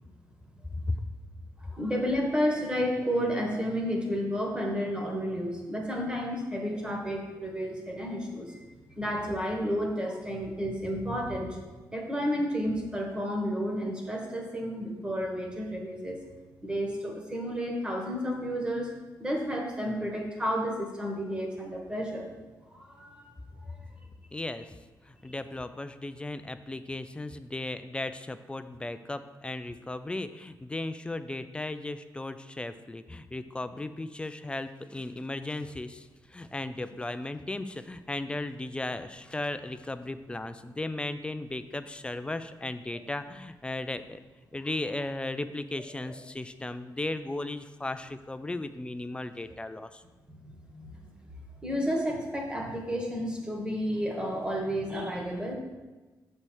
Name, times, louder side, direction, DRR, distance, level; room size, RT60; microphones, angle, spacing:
voice 1, 1.6-8.6 9.0-11.6 11.9-16.2 16.6-18.9 19.2-22.3 22.7-23.3 23.7-23.8 46.1-46.2 50.4-50.9 51.6-55.5, equal, 10° right, 1 dB, 1.4 m, -31 dB
voice 2, 24.3-24.7 25.1-44.2 44.5-50.0, left 2 dB, 15° left, 11 dB, 0.4 m, -36 dB
6.7 x 4.3 x 6.3 m, 1.2 s
cardioid pair, 110°, 8 cm